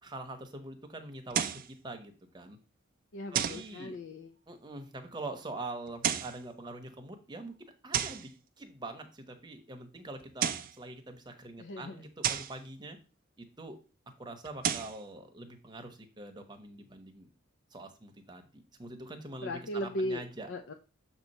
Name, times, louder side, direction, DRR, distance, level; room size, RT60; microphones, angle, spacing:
voice 1, 0.0-1.5 1.8-2.6 3.3-4.0 4.5-8.3 8.6-13.0 13.4-13.8 14.2-17.3 17.7-20.5, right 2 dB, 20° right, 5 dB, 0.9 m, -44 dB
sound 1, 1.3-1.7 3.3-3.7 5.9-6.4 7.9-8.3 10.2-10.8 12.2-12.6 14.4-15.0, right 9 dB, 45° right, 0.4 m, -32 dB
voice 2, 3.1-4.3 11.6-12.0 19.4-20.2 20.5-20.7, left 1 dB, 60° left, 5 dB, 0.5 m, -37 dB
7.0 x 2.9 x 5.3 m, 0.34 s
head